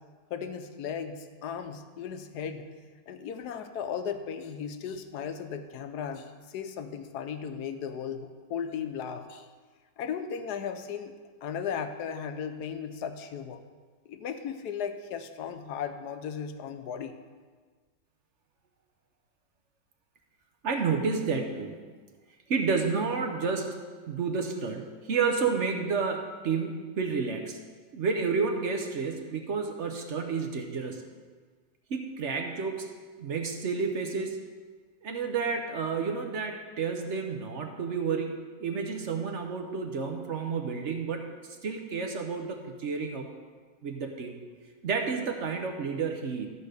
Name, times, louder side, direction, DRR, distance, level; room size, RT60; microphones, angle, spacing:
voice 1, 0.3-2.7 3.1-9.5 10.0-11.1 11.4-13.6 14.1-17.2, left 7 dB, 70° left, 8 dB, 1.2 m, -36 dB
voice 2, 20.6-21.8 22.5-23.8 24.1-27.6 27.9-31.0 31.9-32.9 33.2-34.4 35.0-43.3 43.8-44.4 44.8-46.5, right 5 dB, 55° right, 4 dB, 0.9 m, -30 dB
12.5 x 4.3 x 6.5 m, 1.5 s
omnidirectional pair, 1.9 m